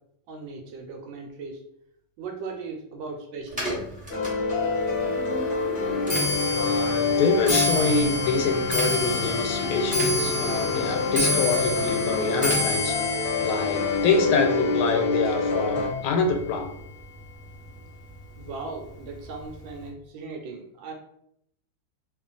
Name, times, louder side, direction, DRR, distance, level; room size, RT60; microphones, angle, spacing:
voice 1, 0.3-1.6 2.2-3.7 18.4-20.9, right 4 dB, 75° right, 2 dB, 1.2 m, -38 dB
Clock, 3.5-16.8 17.2-17.6 18.4-18.5 18.8-19.2 19.5-19.6, left 2 dB, 10° right, 0.5 m, -29 dB
sound 1, 4.1-15.9, left 4 dB, 55° left, 1.2 m, -27 dB
voice 2, 6.5-13.0 13.4-16.7, left 4 dB, 90° left, 4 dB, 1.5 m, -25 dB
3.1 x 2.4 x 3.8 m, 0.74 s
omnidirectional pair, 2.3 m